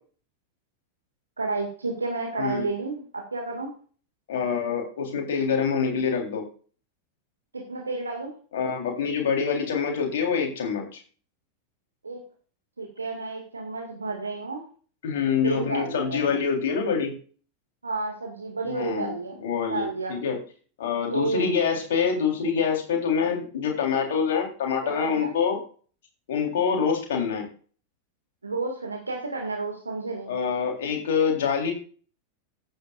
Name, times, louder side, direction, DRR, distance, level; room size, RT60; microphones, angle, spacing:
voice 1, 1.4-3.7 7.5-8.3 12.0-12.2 12.8-14.6 15.4-16.3 17.8-19.4 19.7-20.1 21.1-21.5 24.8-25.3 28.4-30.3, right 3 dB, 80° right, 1 dB, 2.0 m, -31 dB
voice 2, 4.3-6.4 8.5-11.0 15.0-17.1 18.6-19.1 19.4-20.4 20.8-25.6 26.3-27.5 30.3-31.7, left 6 dB, 60° left, 2 dB, 3.6 m, -25 dB
14.0 x 9.2 x 2.5 m, 0.40 s
figure-of-eight pair, 90°, 0 cm